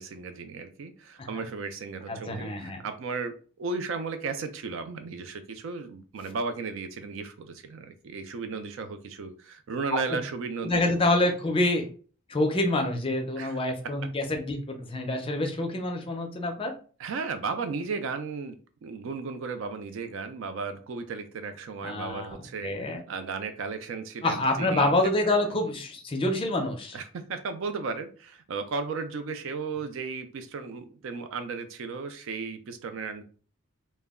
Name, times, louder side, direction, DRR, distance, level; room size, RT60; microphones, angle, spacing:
voice 1, 0.0-10.9 13.4-13.6 17.0-18.6 18.8-25.0 25.5-25.6 26.9-33.2, right 4 dB, 60° right, 8 dB, 0.3 m, -35 dB
voice 2, 2.1-2.8 10.6-11.9 12.3-16.7 21.8-22.3 22.6-23.0 24.2-27.0, left 2 dB, 25° left, 3 dB, 0.4 m, -27 dB
2.2 x 2.0 x 3.5 m, 0.39 s
head